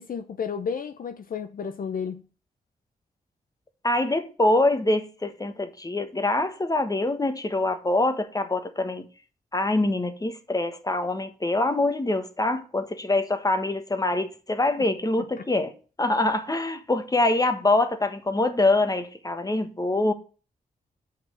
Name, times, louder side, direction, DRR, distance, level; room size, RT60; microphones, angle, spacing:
voice 1, 0.0-2.2 15.4-15.5, left 6 dB, 65° left, 0.7 m, -32 dB
voice 2, 3.8-9.1 9.5-15.7 16.0-20.1, left 2 dB, 25° left, 1.4 m, -24 dB
5.9 x 5.9 x 6.9 m
cardioid pair, 70°, 16 cm